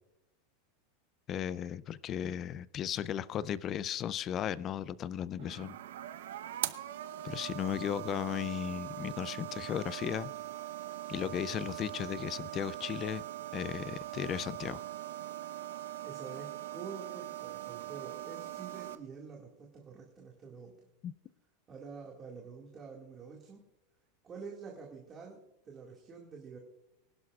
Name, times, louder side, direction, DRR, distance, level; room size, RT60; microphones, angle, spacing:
voice 1, 1.3-5.8 7.2-10.3 11.1-13.2 13.5-14.8 21.0-21.1, left 10 dB, 25° left, 19 dB, 0.4 m, -36 dB
sound 1, 5.4-18.9, right 13 dB, 90° right, 0.8 m, -41 dB
voice 2, 16.0-20.9 21.7-23.6 24.2-26.6, right 5 dB, 20° right, -2 dB, 2.0 m, -48 dB
24.0 x 11.5 x 2.4 m, 0.84 s
supercardioid pair, 160°, 0 cm